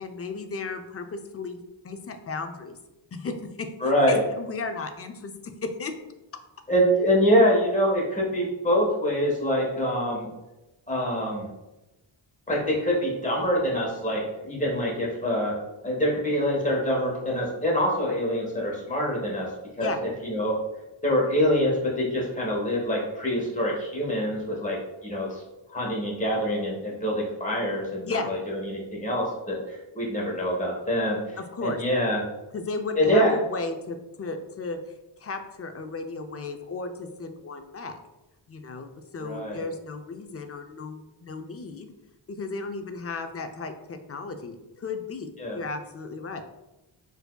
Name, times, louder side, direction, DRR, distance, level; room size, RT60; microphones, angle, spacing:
voice 1, 0.0-2.8 3.1-3.7 4.1-5.3 5.6-5.9 19.8-20.0 28.1-28.3 31.4-31.8 32.5-34.8 35.2-38.0 38.5-41.9 42.3-46.4, left 3 dB, 30° left, 7 dB, 0.4 m, -35 dB
voice 2, 3.8-4.2 6.7-10.3 10.9-11.5 12.5-15.5 15.8-19.5 19.8-20.6 21.0-24.8 25.0-25.4 25.7-32.2 33.0-33.4 39.2-39.6 45.4-45.6, equal, 15° left, -3 dB, 1.1 m, -25 dB
4.5 x 2.7 x 2.2 m, 1.0 s
wide cardioid pair, 75°, 50 cm